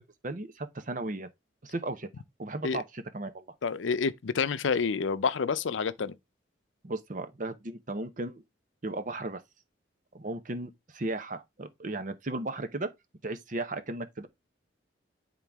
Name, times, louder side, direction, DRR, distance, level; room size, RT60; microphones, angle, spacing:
voice 1, 0.2-1.3 1.6-2.1 2.4-3.5 6.8-8.4 8.8-9.4 10.1-12.9 13.2-14.3, right 2 dB, 45° right, 0.8 m, -35 dB
voice 2, 3.6-6.1, left 5 dB, 85° left, 0.5 m, -28 dB
9.9 x 3.8 x 3.5 m
head